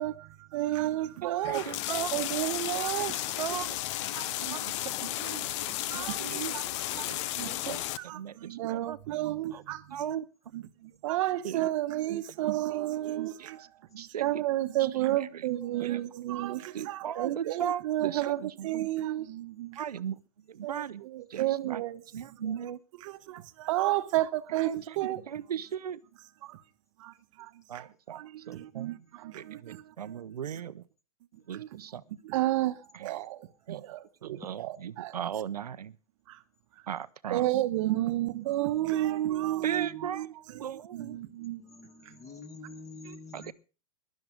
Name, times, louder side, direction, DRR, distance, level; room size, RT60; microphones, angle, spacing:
voice 1, 0.0-1.7 2.1-3.2 4.1-4.6 5.7-6.6 6.9-7.6 8.0-10.0 10.5-13.7 14.0-19.8 20.6-22.0 23.0-25.2 26.4-26.6 27.0-30.2 31.5-31.8 32.2-35.1 36.3-36.4 37.3-41.6 42.1-42.2 43.0-43.1, right 15 dB, 55° right, 1.2 m, -32 dB
sound 1, 1.4-8.0, left 15 dB, 50° left, 1.0 m, -33 dB
voice 2, 1.5-2.1 3.4-3.8 4.4-4.6 5.0-5.5 5.9-6.5 7.1-7.8 8.1-9.0 9.5-9.6 9.9-10.2 11.4-11.7 13.4-13.5 13.9-14.4 15.8-16.0 16.7-18.9 19.8-20.2 20.6-21.0 21.3-21.8 22.1-22.8 24.6-24.8 25.3-26.0 27.7-28.2 28.5-28.9 29.3-30.8 31.5-32.0 33.7-33.8 34.2-35.9 36.9-37.4 39.6-40.3 40.6-41.2 43.3-43.5, right 9 dB, 85° right, 0.8 m, -37 dB
voice 3, 41.0-43.5, left 3 dB, 15° left, 2.1 m, -48 dB
16.0 x 12.0 x 5.2 m
hypercardioid pair, 125°, 20 cm